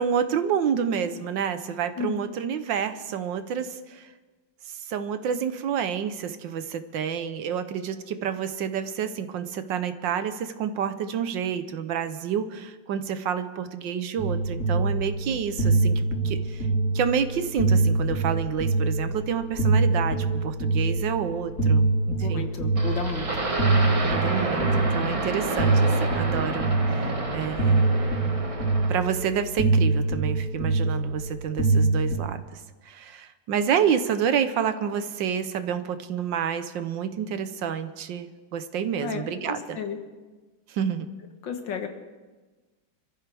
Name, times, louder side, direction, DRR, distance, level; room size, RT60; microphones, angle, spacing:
voice 1, 0.0-4.1 4.6-16.7 16.9-22.5 24.0-27.9 28.9-39.8 40.7-41.1, right 8 dB, 70° right, 10 dB, 1.5 m, -29 dB
sound 1, 14.2-32.2, right 3 dB, 50° left, 4.4 m, -24 dB
voice 2, 22.2-23.3 39.0-40.0 41.4-41.9, left 6 dB, 70° left, 6 dB, 2.0 m, -32 dB
sound 2, 22.7-29.1, right 2 dB, 20° right, 1.0 m, -29 dB
26.5 x 14.0 x 3.5 m, 1.3 s
omnidirectional pair, 2.1 m